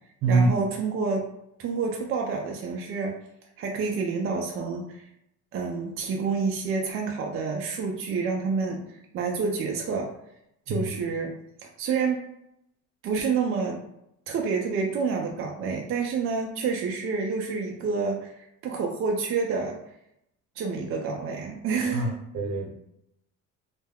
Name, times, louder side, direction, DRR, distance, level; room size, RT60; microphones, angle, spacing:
voice 1, 0.3-1.2 1.6-3.1 3.6-5.1 5.5-8.8 9.1-10.1 10.7-11.3 11.8-12.2 13.0-13.8 14.3-18.3 18.6-19.8 20.6-22.2, right 5 dB, 45° right, 1 dB, 0.4 m, -28 dB
voice 2, 21.9-22.7, right 3 dB, 75° right, 0 dB, 0.8 m, -24 dB
2.2 x 2.1 x 3.4 m, 0.79 s
cardioid pair, 140°, 31 cm